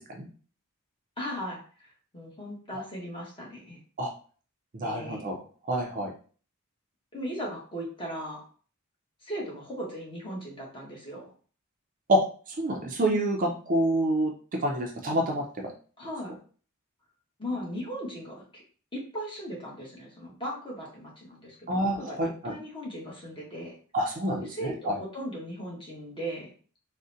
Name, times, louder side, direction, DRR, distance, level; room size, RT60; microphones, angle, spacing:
voice 1, 1.2-1.6 2.1-3.8 4.8-5.3 7.1-8.4 9.2-11.3 16.0-16.3 17.4-18.6 18.9-23.7 24.4-26.5, equal, 25° left, -3 dB, 1.1 m, -37 dB
voice 2, 4.8-5.4 5.7-6.1 12.1-12.2 12.6-14.3 14.6-15.4 21.7-22.5 23.9-25.0, right 1 dB, 40° right, 1 dB, 0.4 m, -27 dB
3.7 x 2.1 x 2.6 m, 0.40 s
head